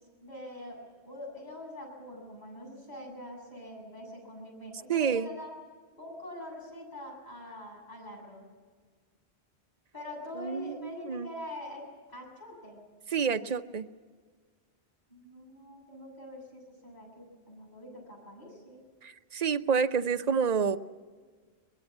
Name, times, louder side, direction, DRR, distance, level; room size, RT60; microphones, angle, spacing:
voice 1, 0.2-0.8 1.0-5.5 6.0-8.5 9.9-12.8 15.1-18.8, left 1 dB, 40° left, -1 dB, 7.9 m, -44 dB
voice 2, 4.9-5.3 10.3-11.3 13.1-13.9 19.0-20.8, right 6 dB, 40° right, 9 dB, 0.8 m, -28 dB
23.5 x 21.0 x 7.3 m, 1.5 s
omnidirectional pair, 1.1 m